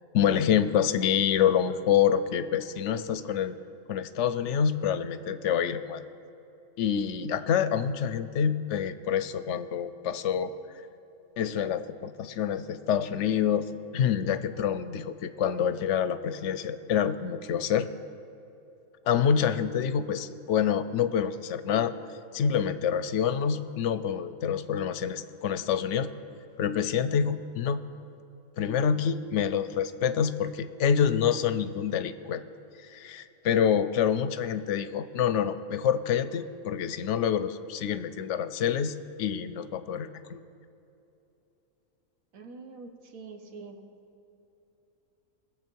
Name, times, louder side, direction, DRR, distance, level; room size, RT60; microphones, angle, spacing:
voice 1, 0.1-3.6 3.9-6.0 6.8-10.5 11.4-17.9 19.1-21.9 22.3-26.1 26.6-27.8 28.6-32.4 32.9-40.4, left 8 dB, 70° left, 12 dB, 0.8 m, -27 dB
voice 2, 42.3-43.8, right 4 dB, 85° right, 5 dB, 1.5 m, -45 dB
21.5 x 7.5 x 4.5 m, 3.0 s
omnidirectional pair, 1.4 m